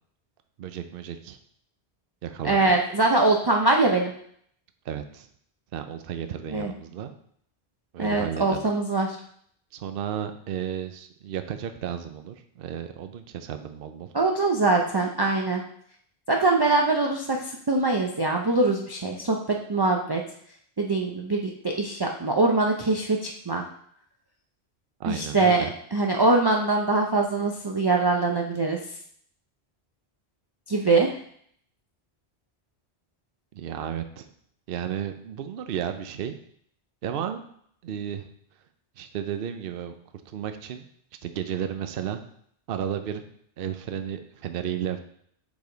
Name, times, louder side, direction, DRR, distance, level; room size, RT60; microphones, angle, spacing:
voice 1, 0.6-1.4 2.2-2.7 4.9-5.3 5.7-7.1 7.9-8.7 9.7-14.1 25.0-25.7 33.5-34.3 34.7-36.4 37.0-37.4 37.8-38.3 39.0-39.9 40.3-40.8 41.2-42.2 42.7-43.2 43.6-45.0, right 9 dB, 60° right, 8 dB, 0.8 m, -33 dB
voice 2, 2.4-4.1 6.5-6.7 8.0-9.2 14.1-15.6 16.3-20.2 20.8-23.6 25.1-25.6 25.9-28.8 30.7-31.1, right 3 dB, 30° right, 1 dB, 0.5 m, -23 dB
7.1 x 5.1 x 3.9 m, 0.65 s
omnidirectional pair, 1.1 m